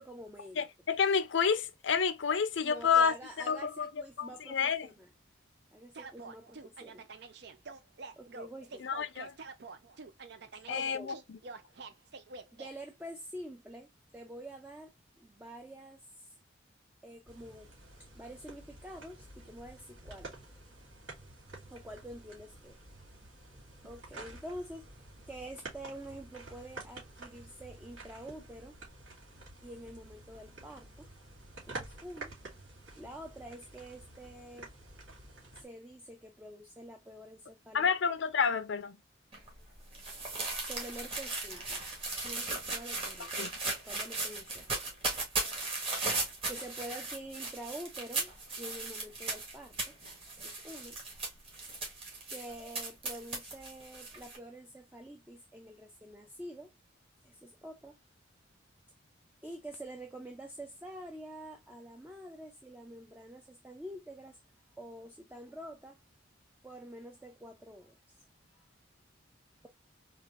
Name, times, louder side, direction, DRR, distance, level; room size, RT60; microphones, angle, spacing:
voice 1, 0.0-0.6 2.6-5.1 5.7-7.0 8.2-8.9 10.5-11.2 12.5-16.4 17.0-17.7 18.1-20.3 21.7-22.8 23.8-24.9 25.3-28.7 29.6-31.1 31.7-32.4 33.0-34.7 35.6-37.9 40.6-41.8 42.2-43.3 43.8-44.9 46.5-48.3 48.6-49.9 50.4-51.0 52.3-56.7 57.2-58.0 59.4-64.4 64.8-66.0 66.6-68.2, right 1 dB, 10° right, 0.5 m, -47 dB
voice 2, 0.6-3.1 3.5-3.9 4.2-4.9 8.8-9.3 10.7-11.4 37.7-39.0 43.4-43.5, left 6 dB, 70° left, 0.5 m, -29 dB
sound 1, 5.9-12.7, right 4 dB, 60° right, 0.5 m, -47 dB
sound 2, 17.3-35.7, right 2 dB, 75° right, 2.4 m, -50 dB
sound 3, 39.3-54.4, right 3 dB, 30° right, 1.5 m, -37 dB
4.2 x 2.5 x 2.4 m
head